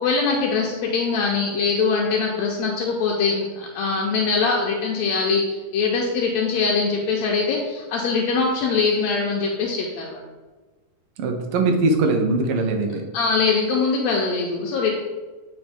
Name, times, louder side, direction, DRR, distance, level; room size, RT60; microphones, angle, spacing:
voice 1, 0.0-10.2 13.1-14.9, left 4 dB, 75° left, -1 dB, 1.8 m, -22 dB
voice 2, 11.2-13.1, right 3 dB, 70° right, 3 dB, 1.4 m, -21 dB
8.0 x 4.5 x 3.4 m, 1.3 s
omnidirectional pair, 3.4 m